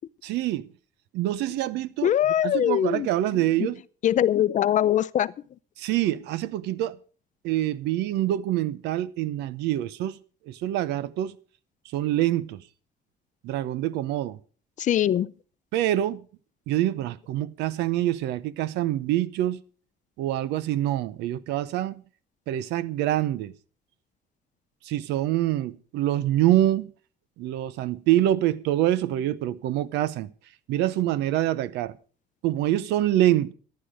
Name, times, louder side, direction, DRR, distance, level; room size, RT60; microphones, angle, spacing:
voice 1, 0.2-0.7 1.1-2.1 2.4-3.8 5.8-7.0 7.4-10.2 10.5-11.4 11.9-12.6 13.4-14.4 15.7-16.2 16.7-19.6 20.2-22.0 22.5-23.5 24.8-26.9 27.4-30.3 30.7-31.9 32.4-33.5, right 13 dB, 85° right, 0.8 m, -25 dB
voice 2, 2.0-3.1 3.6-3.7 4.0-5.3 14.8-15.3, left 11 dB, 45° left, 0.6 m, -22 dB
14.5 x 11.0 x 5.0 m
cardioid pair, 110°, 17 cm